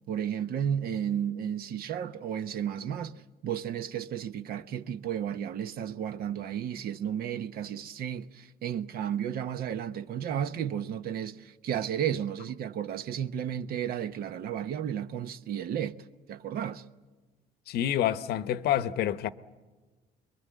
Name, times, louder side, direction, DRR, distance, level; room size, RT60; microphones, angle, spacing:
voice 1, 0.1-16.0 16.3-16.8, right 9 dB, 65° right, 0.9 m, -33 dB
voice 2, 17.7-19.3, left 11 dB, 70° left, 0.9 m, -28 dB
24.5 x 22.5 x 9.2 m
cardioid pair, 110°, 17 cm